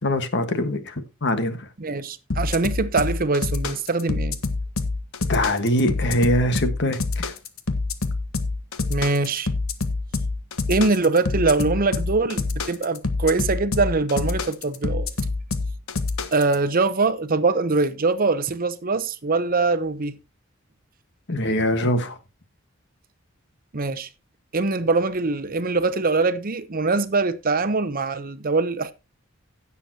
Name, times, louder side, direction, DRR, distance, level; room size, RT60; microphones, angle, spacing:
voice 1, 0.0-1.7 5.2-7.3 21.3-22.2, left 1 dB, 55° left, 1.5 m, -23 dB
voice 2, 1.8-4.4 8.9-9.5 10.7-15.1 16.3-20.2 23.7-24.1 24.5-28.9, right 3 dB, 45° right, 0.8 m, -23 dB
sound 1, 2.3-16.6, left 3 dB, 80° left, 1.3 m, -26 dB
16.5 x 7.1 x 2.8 m
head